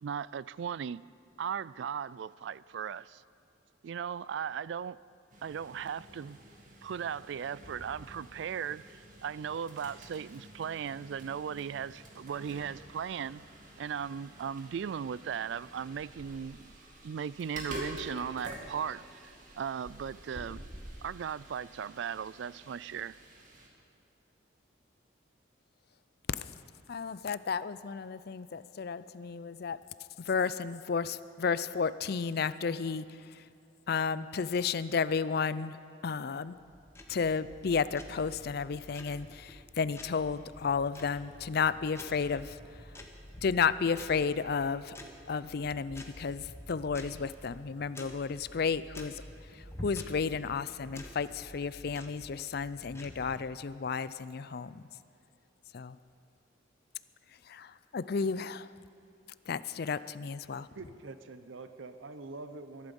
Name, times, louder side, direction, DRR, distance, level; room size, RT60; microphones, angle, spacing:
voice 1, 0.0-1.0 1.4-3.2 3.8-5.0 5.4-6.4 6.8-13.4 13.8-16.7 17.0-20.6 21.0-23.1, right 7 dB, 65° right, 0.3 m, -37 dB
sound 1, 5.3-23.7, right 1 dB, 40° right, 2.3 m, -48 dB
voice 2, 26.9-29.8 30.2-33.4 33.9-35.8 36.0-36.6 37.1-42.9 43.4-45.0 45.3-49.2 49.5-54.8 55.7-56.0 57.4-58.7 59.5-60.7, left 5 dB, 55° left, 0.4 m, -32 dB
sound 2, 36.5-53.4, left 1 dB, 15° left, 1.2 m, -49 dB
voice 3, 60.7-62.9, right 3 dB, 80° right, 0.7 m, -45 dB
22.0 x 11.5 x 5.3 m
head